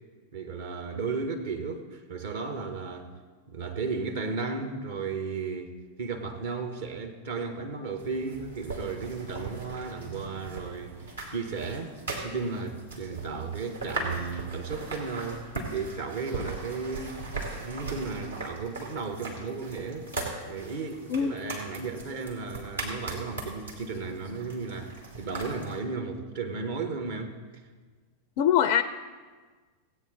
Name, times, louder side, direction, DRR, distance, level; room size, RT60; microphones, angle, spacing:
voice 1, 0.3-3.1 3.5-11.9 12.2-17.3 17.6-20.1 20.5-27.6, right 4 dB, 60° right, 1.0 m, -34 dB
sound 1, 8.0-25.8, right 3 dB, 80° right, 2.2 m, -39 dB
voice 2, 28.4-28.8, left 9 dB, 45° left, 0.4 m, -22 dB
16.5 x 8.8 x 4.0 m
figure-of-eight pair, 90°, 0 cm